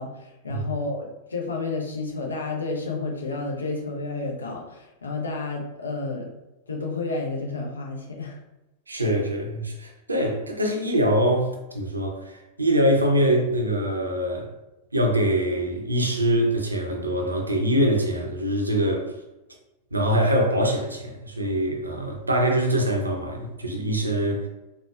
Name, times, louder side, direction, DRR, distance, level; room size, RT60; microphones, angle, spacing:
voice 1, 0.0-6.3 6.7-8.4, left 3 dB, 75° left, 0.6 m, -31 dB
voice 2, 8.9-14.5 14.9-19.1 19.9-24.5, equal, 80° right, 0.5 m, -24 dB
4.1 x 2.2 x 2.3 m
figure-of-eight pair, 90°, 0 cm